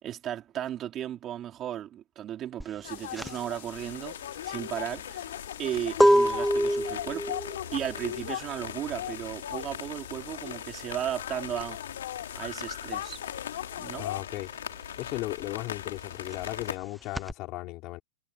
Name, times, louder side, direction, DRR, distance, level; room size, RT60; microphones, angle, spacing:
voice 1, 0.0-4.2 4.4-5.3 5.6-7.4 7.7-11.8 12.3-13.2 13.8-14.1, right 11 dB, 25° right, 2.8 m, -35 dB
sound 1, 2.6-12.8 13.1-17.3, equal, ahead, 0.7 m, -28 dB
sound 2, 2.8-14.2, left 12 dB, 70° left, 3.2 m, -40 dB
sound 3, 3.7-16.8, left 9 dB, 90° left, 5.4 m, -41 dB
voice 2, 14.0-14.5 15.0-18.0, left 20 dB, 35° left, 4.0 m, -36 dB
hypercardioid pair, 150°, 0 cm